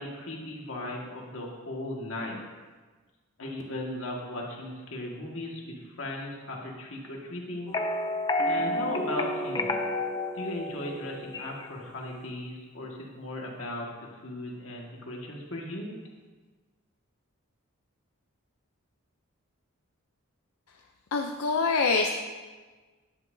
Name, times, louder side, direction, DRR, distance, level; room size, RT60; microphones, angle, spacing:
voice 1, 0.0-2.4 3.4-7.7 8.5-9.7 10.3-15.9, left 1 dB, 65° left, -2 dB, 1.7 m, -37 dB
sound 1, 7.7-11.7, left 1 dB, 20° left, 0.4 m, -30 dB
voice 2, 21.1-22.1, left 4 dB, 80° left, 3 dB, 0.6 m, -25 dB
10.5 x 10.0 x 2.7 m, 1.4 s
head